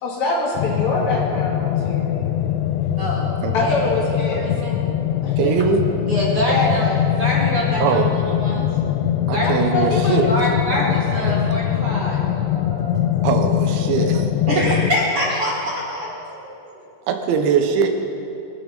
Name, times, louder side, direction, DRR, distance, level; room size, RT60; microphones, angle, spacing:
voice 1, 0.0-2.4 3.5-4.5 5.2-5.5 6.5-7.0 9.4-11.2, left 2 dB, 50° left, -2 dB, 2.6 m, -25 dB
sound 1, 0.6-14.9, left 11 dB, 90° left, 2.9 m, -22 dB
voice 2, 4.4-4.8 6.1-6.9 7.2-8.7 9.3-9.6 10.2-13.3 13.7-14.1 14.4-16.8, equal, 40° right, -6 dB, 2.4 m, -25 dB
voice 3, 5.4-5.8 7.8-8.1 9.3-10.5 13.2-14.3 17.1-17.9, right 6 dB, 80° right, 5 dB, 3.4 m, -21 dB
25.5 x 9.2 x 4.0 m, 2.8 s
omnidirectional pair, 5.2 m